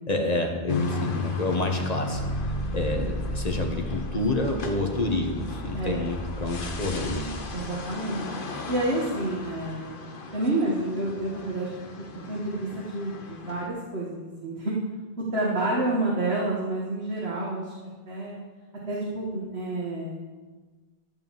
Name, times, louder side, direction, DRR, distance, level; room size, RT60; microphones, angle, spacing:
voice 1, 0.1-2.2 2.7-7.3, left 2 dB, 40° left, 3 dB, 1.4 m, -28 dB
sound 1, 0.7-13.7, left 3 dB, 55° left, 1.1 m, -36 dB
sound 2, 2.1-7.6, equal, 5° left, 0.9 m, -36 dB
voice 2, 5.7-6.1 7.5-8.3 8.7-10.1 10.3-11.8 12.3-14.7 15.3-17.6 18.1-18.4 18.9-20.2, right 2 dB, 90° right, -5 dB, 2.0 m, -29 dB
13.5 x 5.5 x 7.6 m, 1.3 s
omnidirectional pair, 1.0 m